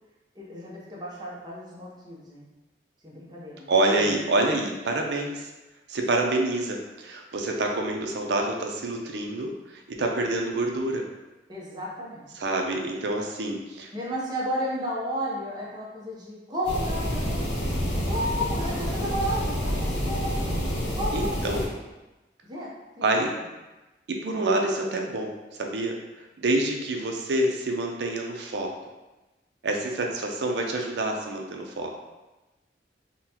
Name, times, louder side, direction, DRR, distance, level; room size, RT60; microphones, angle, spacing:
voice 1, 0.3-2.4 3.0-3.7 11.5-12.3 13.9-17.5 18.1-20.6 20.9-21.6 22.4-22.7 23.0-23.4, equal, 25° right, -5 dB, 0.7 m, -33 dB
voice 2, 3.7-5.5 5.9-11.0 12.3-13.9 21.1-21.6 23.0-23.3 24.1-26.0 26.4-28.7 29.6-31.9, right 2 dB, 70° right, 2 dB, 0.5 m, -27 dB
sound 1, 16.6-21.7, equal, 85° left, 0.9 m, -28 dB
3.8 x 2.1 x 2.8 m, 1.1 s
head